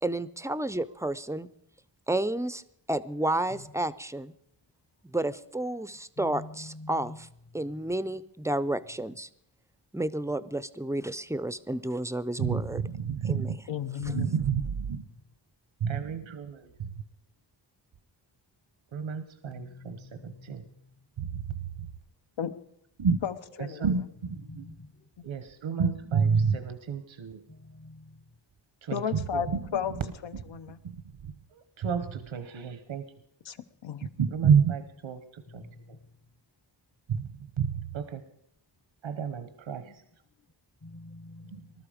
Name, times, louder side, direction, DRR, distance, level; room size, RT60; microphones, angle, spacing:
voice 1, 0.0-1.5 2.1-2.6 2.9-4.3 5.1-7.3 7.5-9.3 9.9-12.8 13.2-13.5, right 1 dB, 5° right, 0.5 m, -31 dB
voice 2, 6.2-7.1 19.5-20.7 24.5-24.9 27.5-28.0 35.5-35.8 39.8-39.9 40.8-41.6, left 2 dB, 30° left, 0.8 m, -46 dB
voice 3, 12.4-13.6 14.1-15.0 15.8-16.9 18.9-20.6 21.2-21.9 23.0-23.2 23.6-24.7 25.2-27.4 28.8-29.8 30.3-30.4 30.8-31.0 31.2-33.1 34.2-36.0 37.1-38.2 39.0-40.0 41.5-41.6, right 6 dB, 80° right, 1.0 m, -30 dB
voice 4, 13.7-14.3 22.4-22.5 23.2-23.9 28.9-29.9 30.2-30.8 33.4-33.6 33.8-34.1, left 8 dB, 75° left, 0.9 m, -33 dB
20.0 x 12.5 x 5.1 m
wide cardioid pair, 95°, 46 cm